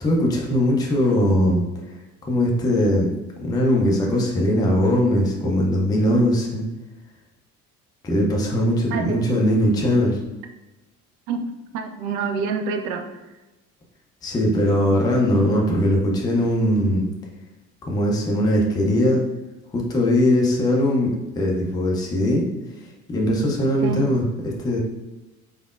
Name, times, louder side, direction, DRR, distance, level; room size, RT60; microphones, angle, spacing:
voice 1, 0.0-1.6 2.2-3.1 3.4-6.6 8.0-10.2 14.2-17.1 17.8-19.2 19.7-22.5 23.1-24.8, left 1 dB, 10° left, -1 dB, 0.4 m, -20 dB
voice 2, 8.9-9.3 11.3-11.4 11.7-13.2 23.8-24.0, right 5 dB, 55° right, 6 dB, 0.5 m, -27 dB
3.3 x 2.3 x 2.3 m, 1.0 s
figure-of-eight pair, 60°, 45 cm